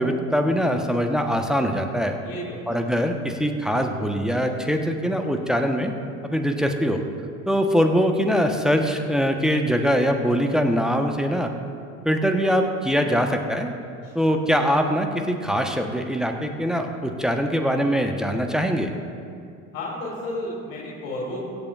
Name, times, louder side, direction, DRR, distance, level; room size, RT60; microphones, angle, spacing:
voice 1, 0.0-2.2 2.7-5.9 6.2-7.0 7.5-11.5 12.0-13.7 14.1-18.9, equal, ahead, 4 dB, 1.0 m, -22 dB
voice 2, 2.2-2.7 14.0-14.3 19.7-21.4, left 1 dB, 65° left, -5 dB, 2.5 m, -32 dB
24.0 x 8.2 x 2.4 m, 2.4 s
figure-of-eight pair, 65°, 44 cm